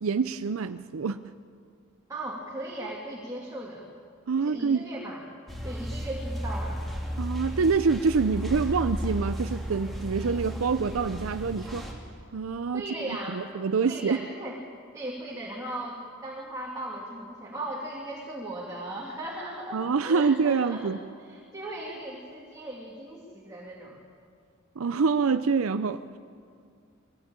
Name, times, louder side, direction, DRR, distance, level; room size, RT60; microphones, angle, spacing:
voice 1, 0.0-1.2 4.3-4.9 7.2-11.9 12.3-12.8 13.3-14.3 19.7-21.0 24.8-26.0, right 5 dB, 85° right, 11 dB, 0.6 m, -26 dB
voice 2, 2.1-3.9 4.4-5.2 5.6-6.8 12.7-13.4 13.8-14.6 14.9-20.9 21.3-24.0, right 1 dB, 15° right, -4 dB, 2.5 m, -37 dB
sound 1, 5.5-11.9, equal, ahead, 2.9 m, -34 dB
22.0 x 16.5 x 8.8 m, 2.3 s
head